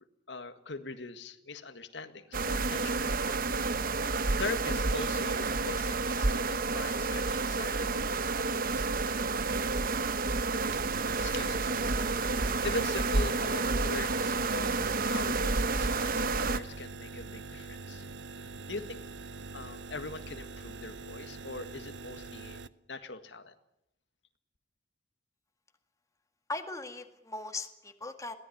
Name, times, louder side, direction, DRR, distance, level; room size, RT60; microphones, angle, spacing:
voice 1, 0.3-3.8 4.0-8.9 9.5-9.6 10.7-18.0 18.7-19.0 19.5-22.6 22.9-23.5, left 3 dB, 85° left, 8 dB, 1.8 m, -42 dB
sound 1, 2.3-16.6, right 3 dB, 55° right, 1.0 m, -30 dB
sound 2, 10.7-22.7, right 3 dB, 85° right, 0.8 m, -44 dB
voice 2, 26.5-28.4, left 2 dB, 20° left, 6 dB, 2.0 m, -39 dB
22.5 x 17.5 x 10.0 m, 0.79 s
head